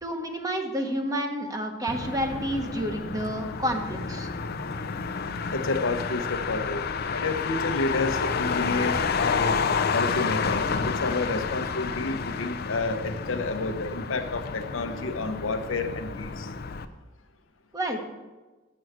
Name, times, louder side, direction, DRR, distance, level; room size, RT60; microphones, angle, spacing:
voice 1, 0.0-4.3 17.7-18.0, equal, 20° right, 3 dB, 1.1 m, -29 dB
Motor vehicle (road), 1.9-16.8, left 5 dB, 50° left, 0.5 m, -30 dB
voice 2, 5.5-9.6 9.9-16.5, left 3 dB, 80° left, 6 dB, 0.9 m, -30 dB
7.6 x 6.3 x 7.9 m, 1.2 s
head